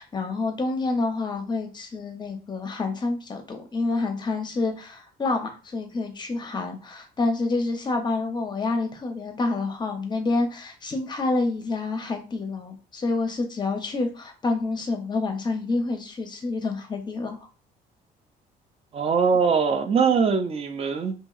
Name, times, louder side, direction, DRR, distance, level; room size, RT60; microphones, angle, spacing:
voice 1, 0.0-17.4, left 3 dB, 25° left, 0.6 m, -28 dB
voice 2, 18.9-21.1, right 6 dB, 35° right, 0.4 m, -22 dB
2.8 x 2.7 x 2.4 m
cardioid pair, 135°, 17 cm